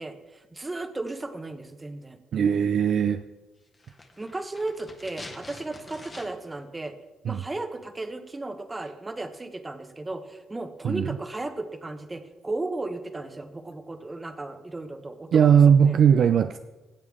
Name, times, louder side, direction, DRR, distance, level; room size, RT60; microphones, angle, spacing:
voice 1, 0.0-2.2 4.2-6.9 7.2-15.6 15.9-16.0, right 2 dB, 20° right, 8 dB, 1.0 m, -35 dB
voice 2, 2.3-3.2 7.2-7.4 10.8-11.1 15.3-16.6, right 7 dB, 60° right, 9 dB, 0.4 m, -19 dB
sound 1, 3.7-6.6 6.9-7.0, left 2 dB, 25° left, 1.5 m, -45 dB
15.5 x 7.6 x 3.6 m, 1.1 s
cardioid pair, 90°, 0 cm